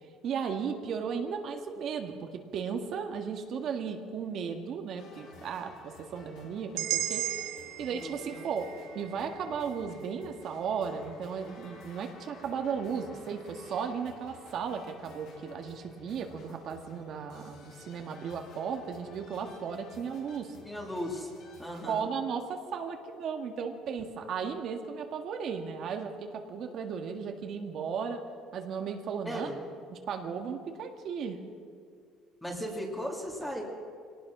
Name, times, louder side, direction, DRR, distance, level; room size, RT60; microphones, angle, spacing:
voice 1, 0.2-7.3 7.8-20.6 21.9-28.2 28.5-29.5 29.9-31.4, right 6 dB, 45° right, 4 dB, 1.9 m, -35 dB
sound 1, 5.0-21.9, left 3 dB, 65° left, 5.4 m, -53 dB
sound 2, 6.8-10.8, right 13 dB, 70° right, 1.1 m, -37 dB
voice 2, 7.8-8.5 20.6-21.3 21.6-22.0 29.2-29.6 32.4-33.6, equal, 5° left, -2 dB, 2.6 m, -37 dB
25.5 x 18.5 x 6.2 m, 2.2 s
cardioid pair, 170°, 0 cm